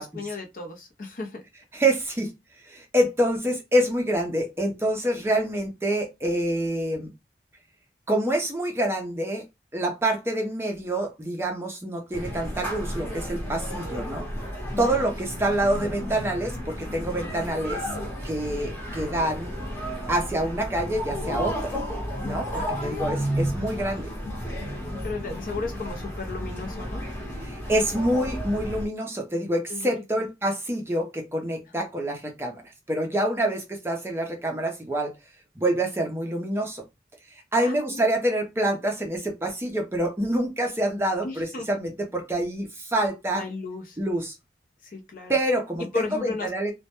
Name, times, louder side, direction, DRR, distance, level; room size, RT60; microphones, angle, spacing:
voice 1, 0.0-1.4 14.7-14.9 22.5-23.1 25.0-27.0 29.7-29.9 31.8-31.9 37.6-38.0 41.2-41.7 43.3-44.0 44.8-45.4 45.9-46.5, left 3 dB, 50° left, 0.5 m, -35 dB
voice 2, 1.7-2.3 2.6-7.1 8.1-9.4 9.7-14.3 14.8-17.8 18.2-19.5 20.1-21.8 22.2-24.1 27.4-32.6 32.9-35.1 35.6-36.8 37.5-43.4 44.0-44.3 45.3-45.8 46.2-46.7, right 1 dB, 15° right, 0.4 m, -26 dB
sound 1, 12.1-28.8, equal, 15° left, 0.8 m, -32 dB
2.1 x 2.0 x 2.8 m
head